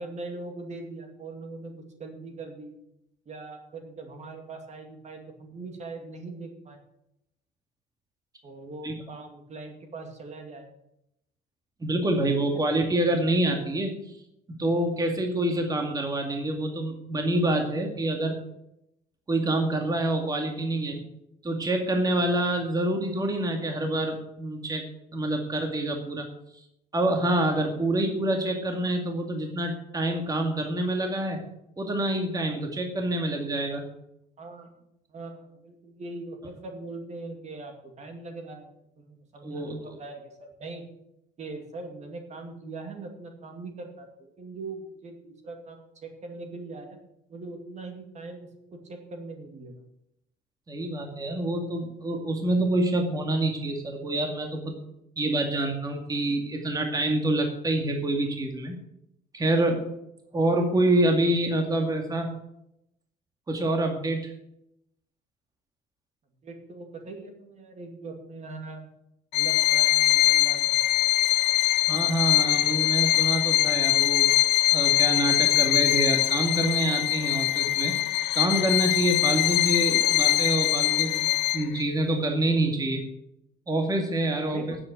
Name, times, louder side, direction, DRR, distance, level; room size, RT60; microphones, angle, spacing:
voice 1, 0.0-2.7 3.3-6.8 8.4-10.7 12.5-12.6 34.4-34.7 35.1-38.7 39.0-40.8 41.4-47.0 47.3-49.7 66.4-68.9 69.3-70.8 84.5-84.8, right 3 dB, 45° right, 4 dB, 2.4 m, -41 dB
voice 2, 11.8-14.1 14.5-18.4 19.3-21.0 21.4-24.9 25.1-26.2 26.9-31.4 31.8-33.8 39.4-40.0 50.7-54.8 55.2-58.8 59.3-59.8 60.3-62.4 63.5-64.3 71.9-74.3 74.7-77.9 78.3-81.2 81.5-83.0 83.7-84.8, right 1 dB, 20° right, 3 dB, 2.1 m, -26 dB
Bowed string instrument, 69.3-81.8, left 17 dB, 90° left, 0.6 m, -23 dB
9.5 x 7.9 x 9.0 m, 0.81 s
cardioid pair, 110°, 17 cm